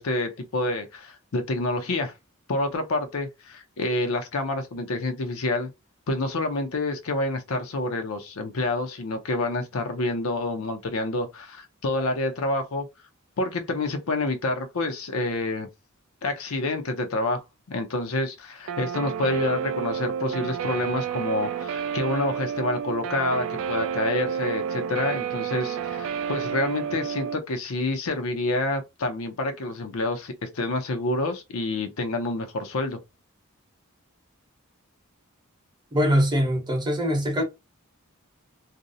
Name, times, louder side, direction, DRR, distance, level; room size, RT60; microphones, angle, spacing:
voice 1, 0.0-2.1 2.5-5.7 6.1-12.9 13.4-15.7 16.2-17.4 17.7-33.0, left 2 dB, 70° left, 0.5 m, -28 dB
Guitar, 18.7-27.4, right 8 dB, 65° right, 0.3 m, -30 dB
voice 2, 35.9-37.4, equal, 20° right, 0.7 m, -22 dB
2.5 x 2.0 x 2.6 m
head